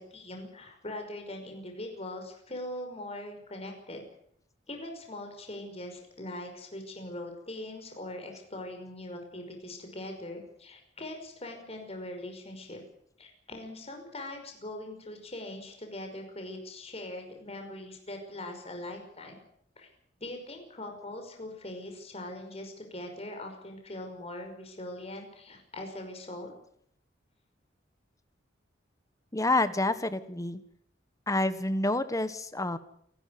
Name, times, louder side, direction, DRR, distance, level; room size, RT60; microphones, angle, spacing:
voice 1, 0.0-4.0 4.7-12.8 13.2-19.4 19.8-19.9 20.2-26.5, left 1 dB, 35° left, 4 dB, 5.6 m, -41 dB
voice 2, 29.3-30.6 31.3-32.8, left 2 dB, 20° left, 12 dB, 1.5 m, -28 dB
28.5 x 12.0 x 9.6 m, 0.69 s
head